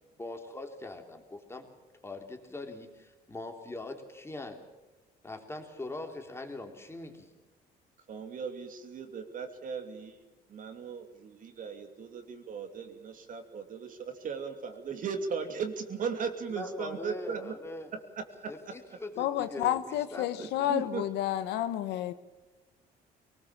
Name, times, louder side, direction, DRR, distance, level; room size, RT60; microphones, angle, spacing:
voice 1, 0.2-1.7 2.0-4.6 5.2-7.3 16.5-17.9 18.5-20.5 20.8-20.9, left 2 dB, 15° left, 4 dB, 3.4 m, -42 dB
voice 2, 8.1-10.2 10.5-17.5 18.2-18.5 20.4-21.0, right 6 dB, 50° right, 6 dB, 2.9 m, -37 dB
voice 3, 19.2-22.1, left 12 dB, 90° left, 11 dB, 1.3 m, -30 dB
23.0 x 19.5 x 7.5 m, 1.2 s
cardioid pair, 110°, 17 cm